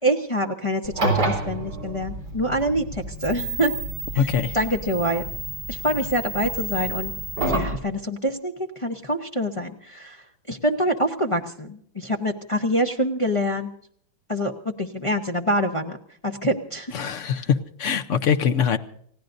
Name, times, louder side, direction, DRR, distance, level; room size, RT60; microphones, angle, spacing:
voice 1, 0.0-3.7 4.1-4.3 4.5-5.2 5.7-7.1 7.5-13.7 14.3-16.0 16.2-16.9, equal, 40° left, 1 dB, 0.4 m, -25 dB
sound 1, 0.8-7.8, right 2 dB, 55° right, 4.7 m, -29 dB
voice 2, 4.2-4.6 16.9-18.8, left 7 dB, 60° left, 10 dB, 0.8 m, -23 dB
30.0 x 16.0 x 2.6 m, 0.64 s
omnidirectional pair, 2.1 m